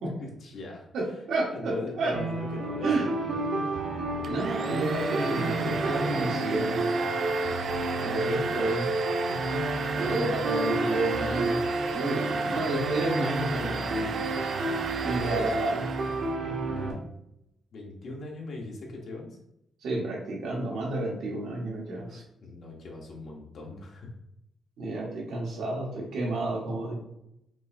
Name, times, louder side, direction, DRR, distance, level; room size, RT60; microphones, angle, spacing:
voice 1, 0.2-1.1 1.5-3.4 10.0-11.6 12.3-12.6 16.3-17.1 17.7-19.4 22.0-24.1, left 2 dB, 50° left, -1 dB, 1.1 m, -41 dB
voice 2, 0.9-2.2 2.8-3.1 4.3-6.8 7.9-8.9 9.9-11.6 11.9-14.2 15.0-15.9 19.8-22.2 24.8-26.9, right 2 dB, 80° right, -3 dB, 1.5 m, -30 dB
sound 1, 2.1-16.9, right 2 dB, 60° right, 1.1 m, -31 dB
Domestic sounds home sounds, 4.2-16.3, right 5 dB, 45° right, 0.3 m, -34 dB
5.3 x 3.1 x 2.8 m, 0.81 s
wide cardioid pair, 175°, 0 cm